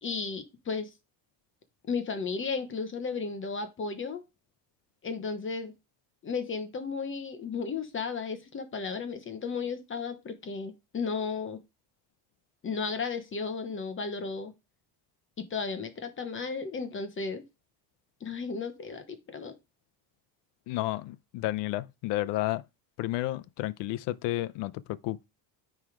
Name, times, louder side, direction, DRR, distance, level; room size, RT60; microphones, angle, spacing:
voice 1, 0.0-0.9 1.9-4.2 5.0-5.7 6.2-11.6 12.6-14.5 15.4-17.4 18.2-19.5, left 5 dB, 25° left, 0.9 m, -34 dB
voice 2, 20.7-22.6 23.0-24.7 25.0-25.2, left 16 dB, 65° left, 0.6 m, -31 dB
9.3 x 3.3 x 4.9 m
cardioid pair, 135°, 45 cm